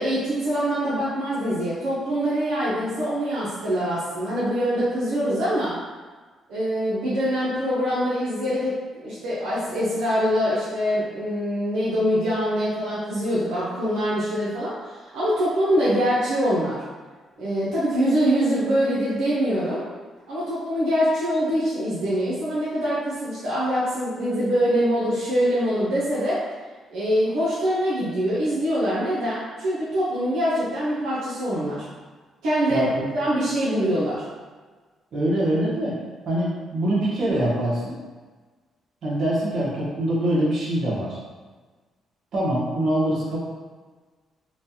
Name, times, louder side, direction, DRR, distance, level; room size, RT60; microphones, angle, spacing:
voice 1, 0.0-5.7 6.5-14.7 15.1-16.8 17.4-19.8 20.3-26.4 26.9-31.8 32.4-32.9 33.1-34.2, equal, 90° right, -9 dB, 0.7 m, -24 dB
voice 2, 32.7-33.1 35.1-36.0 36.3-37.9 39.0-41.2 42.3-43.4, right 1 dB, 65° right, -6 dB, 0.9 m, -24 dB
3.1 x 2.2 x 2.7 m, 1.4 s
cardioid pair, 90°, 0 cm